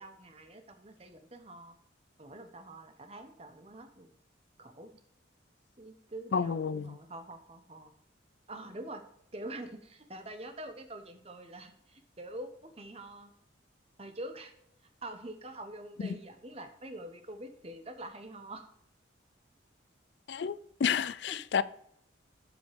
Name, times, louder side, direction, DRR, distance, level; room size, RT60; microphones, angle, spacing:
voice 1, 0.0-1.7 2.2-4.1 4.6-5.0 5.8-7.9 8.5-9.0 9.3-13.3 14.0-14.5 15.0-18.6 21.3-21.4, right 1 dB, 30° right, 1.0 m, -45 dB
voice 2, 6.3-7.0 20.3-21.6, left 7 dB, 60° left, 0.3 m, -30 dB
12.5 x 5.2 x 3.5 m
head